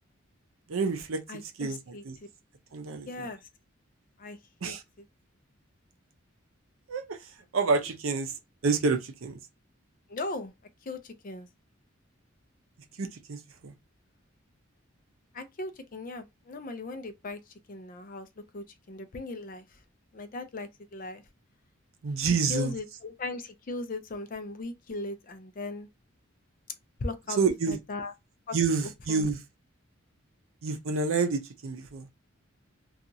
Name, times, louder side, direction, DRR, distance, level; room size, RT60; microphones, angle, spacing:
voice 1, 0.7-1.2 1.6-2.2 2.7-3.3 4.6-4.8 6.9-7.2 7.5-8.3 8.6-9.4 13.0-13.7 22.0-22.7 27.4-27.8 28.5-29.4 30.6-32.1, right 4 dB, 75° right, 0.6 m, -28 dB
voice 2, 1.3-2.0 3.1-3.4 4.2-4.4 4.6-4.7 10.1-10.5 10.9-11.5 15.3-17.4 17.7-18.3 18.5-19.6 20.1-21.2 22.2-25.9 27.0-27.4 27.7-28.1 28.5-28.6 29.1-29.3, left 3 dB, 40° left, 0.4 m, -38 dB
2.8 x 2.4 x 2.5 m
head